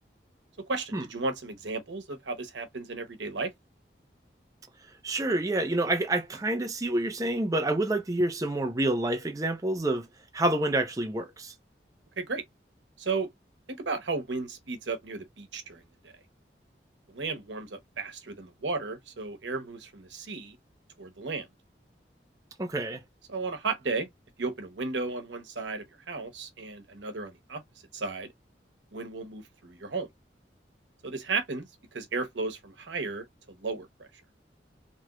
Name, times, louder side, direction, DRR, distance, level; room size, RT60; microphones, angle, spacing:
voice 1, 0.7-3.5 12.2-12.4 13.0-13.3 13.7-16.1 17.1-20.6 21.0-21.5 23.3-24.1 24.4-27.6 27.9-28.3 28.9-30.1 31.0-31.7 31.9-34.1, right 3 dB, 85° right, 1.0 m, -34 dB
voice 2, 5.0-10.1 10.3-11.5 22.6-23.0, right 1 dB, 20° right, 0.5 m, -28 dB
3.0 x 2.3 x 3.0 m
head